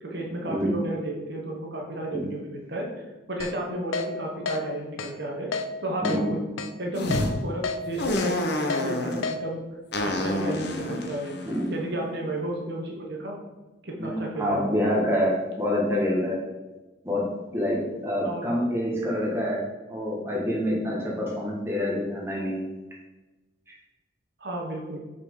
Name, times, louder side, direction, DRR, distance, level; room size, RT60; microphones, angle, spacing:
voice 1, 0.0-5.5 5.8-6.4 6.8-9.7 10.0-11.3 11.7-13.4 13.8-14.7 18.2-18.5 24.4-25.0, right 1 dB, 55° right, -1 dB, 1.0 m, -33 dB
Keyboard (musical), 3.4-3.5 3.9-4.1 4.5-4.6 5.0-5.1 5.5-5.7 6.0-6.2 6.6-6.7 7.1-7.2 7.6-7.8 8.2-8.3 8.7-8.8 9.2-9.4, left 5 dB, 90° left, 0.5 m, -29 dB
voice 2, 6.0-6.4 11.4-11.7 14.0-16.4 17.0-22.7, left 1 dB, 15° right, -4 dB, 1.4 m, -27 dB
sound 1, 6.9-7.3 8.0-9.2 9.9-12.3, left 1 dB, 55° left, 0.7 m, -29 dB
5.8 x 4.2 x 4.6 m, 1.1 s
head